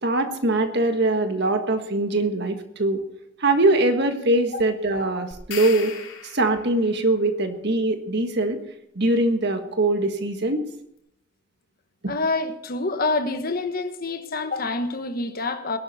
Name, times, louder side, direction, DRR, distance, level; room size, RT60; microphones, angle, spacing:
voice 1, 0.0-3.0 3.4-5.9 6.3-8.6 8.9-10.6 12.0-12.1, right 2 dB, 55° right, 1.6 m, -22 dB
sound 1, 5.3-6.9, left 7 dB, 80° left, 3.1 m, -37 dB
voice 2, 12.1-15.8, left 3 dB, 50° left, 1.2 m, -27 dB
19.5 x 11.5 x 4.3 m
head